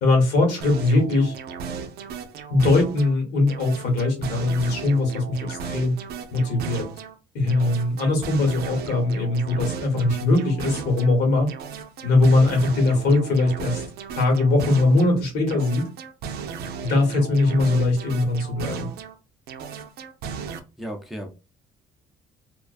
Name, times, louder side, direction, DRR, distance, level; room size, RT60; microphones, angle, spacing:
voice 1, 0.0-1.3 2.5-5.9 6.3-6.9 7.3-11.5 12.0-13.8 14.1-15.9 16.8-18.9, left 2 dB, 80° left, 1 dB, 1.3 m, -21 dB
sound 1, 0.6-3.2 3.5-7.2 7.5-11.1 11.5-15.1 15.5-19.2 19.5-20.6, right 6 dB, 70° right, 0.5 m, -35 dB
voice 2, 20.8-21.3, equal, ahead, 3 dB, 0.4 m, -34 dB
2.4 x 2.2 x 2.4 m, 0.30 s
cardioid pair, 110°, 17 cm